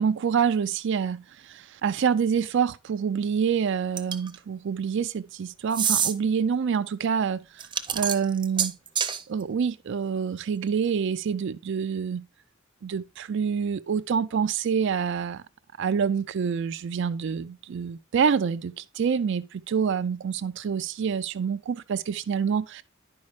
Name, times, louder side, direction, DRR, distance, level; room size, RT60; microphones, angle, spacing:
voice 1, 0.0-7.7 7.9-8.8 9.3-12.3 12.8-15.4 15.8-22.8, right 6 dB, 60° right, 0.4 m, -27 dB
sound 1, 4.0-4.4 5.7-6.1 7.6-9.2, right 8 dB, 25° right, 0.6 m, -26 dB
10.5 x 5.3 x 3.1 m
head